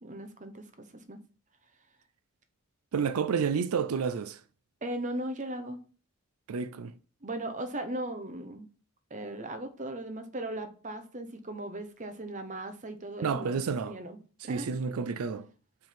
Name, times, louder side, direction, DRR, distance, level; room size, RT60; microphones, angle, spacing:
voice 1, 0.0-1.2 4.8-5.8 7.2-8.7 9.1-13.6 13.8-14.2 14.4-14.7, right 1 dB, 35° right, 0.9 m, -38 dB
voice 2, 2.9-4.4 6.5-6.9 13.2-14.0 14.4-15.5, right 6 dB, 90° right, 0.4 m, -30 dB
5.2 x 3.6 x 5.7 m
head